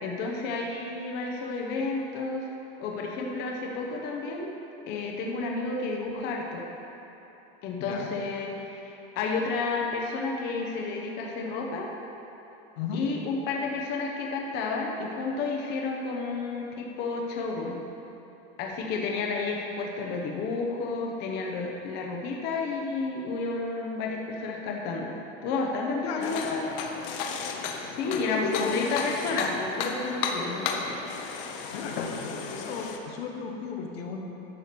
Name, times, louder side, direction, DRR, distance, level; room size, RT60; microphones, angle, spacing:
voice 1, 0.0-2.4 2.8-4.5 4.9-6.7 7.6-11.9 12.9-17.8 18.6-25.2 25.4-26.8 27.8-31.0, left 3 dB, 35° left, 0 dB, 0.9 m, -31 dB
voice 2, 7.8-8.1 12.8-13.0 26.0-26.4 27.8-28.8 31.7-34.2, left 5 dB, 90° left, 1 dB, 1.4 m, -35 dB
sound 1, 26.2-33.0, left 5 dB, 60° left, 0.9 m, -34 dB
11.0 x 4.8 x 6.8 m, 3.0 s
supercardioid pair, 170°, 30 cm